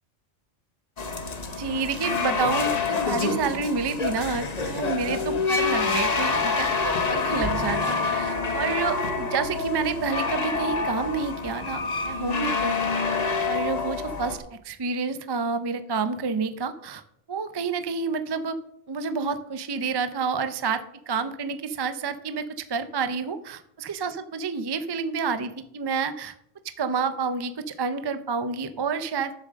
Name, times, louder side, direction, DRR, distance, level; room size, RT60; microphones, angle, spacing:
sound 1, 1.0-14.4, left 4 dB, 35° left, 1.0 m, -27 dB
voice 1, 1.6-13.0 13.4-17.0 17.3-18.6 18.9-26.3 26.8-29.3, right 5 dB, 35° right, 10 dB, 0.4 m, -29 dB
7.6 x 7.5 x 6.4 m, 0.72 s
omnidirectional pair, 1.3 m